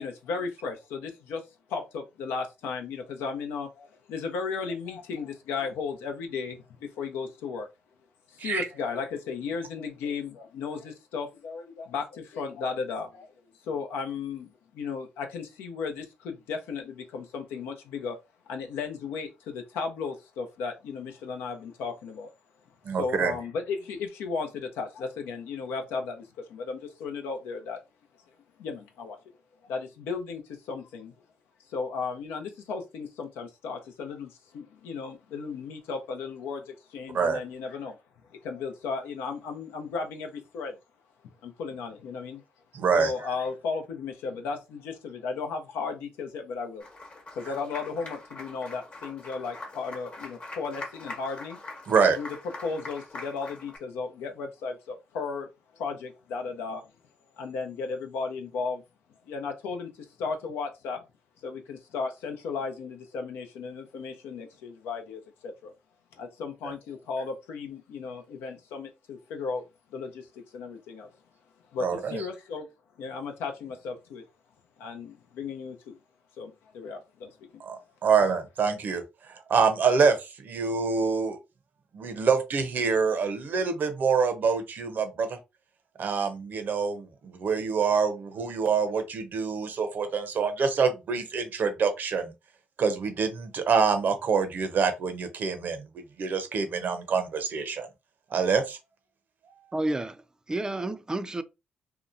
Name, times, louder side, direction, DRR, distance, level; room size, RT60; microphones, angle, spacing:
voice 1, 0.0-1.4 1.7-7.7 8.3-13.3 13.6-18.2 18.5-22.3 23.0-27.8 28.6-29.2 29.6-31.1 31.7-38.0 38.3-40.8 41.4-42.4 42.9-46.9 47.3-51.6 52.2-52.4 52.6-55.5 55.7-56.8 57.4-58.8 59.3-61.0 61.4-65.7 66.2-69.6 69.9-71.1 71.7-72.7 73.0-74.2 74.8-76.0 76.4-77.3, left 5 dB, 80° left, 0.6 m, -35 dB
voice 2, 22.8-23.3 37.1-37.4 42.7-43.1 51.9-52.2 71.8-72.2 77.6-81.4 81.9-85.4 86.0-92.3 92.8-95.8 96.2-97.9 98.3-98.8, right 5 dB, 60° right, 0.6 m, -26 dB
Applause, 46.8-53.8, left 2 dB, 40° left, 1.0 m, -43 dB
voice 3, 99.7-100.2 100.5-101.4, right 2 dB, 20° right, 0.4 m, -30 dB
2.8 x 2.2 x 2.5 m
supercardioid pair, 60°, 4 cm